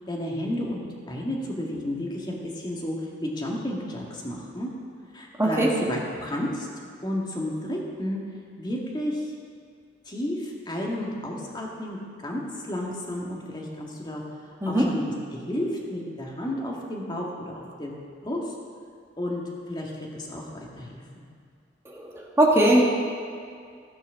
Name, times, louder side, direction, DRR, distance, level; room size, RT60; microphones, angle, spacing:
voice 1, 0.1-4.7 5.1-6.7 7.0-8.2 8.6-9.3 10.0-14.2 14.7-17.9 18.2-18.5 19.2-19.4 19.7-21.2, left 1 dB, 25° left, -2 dB, 1.7 m, -32 dB
voice 2, 5.4-5.7 14.6-14.9 21.8-22.8, right 1 dB, 15° right, -3 dB, 1.6 m, -20 dB
15.0 x 6.3 x 6.2 m, 2.2 s
head